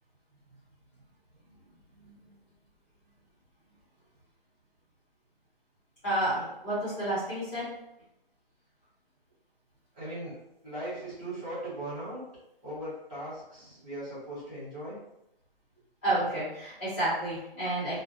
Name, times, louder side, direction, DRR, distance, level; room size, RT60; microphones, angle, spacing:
voice 1, 1.9-2.3 6.0-7.7 16.0-18.0, right 1 dB, 10° left, -14 dB, 0.9 m, -30 dB
voice 2, 9.9-10.3 10.6-12.2 12.6-15.0, right 1 dB, 5° right, -13 dB, 0.6 m, -38 dB
2.4 x 2.0 x 3.0 m, 0.83 s
hypercardioid pair, 180°, 29 cm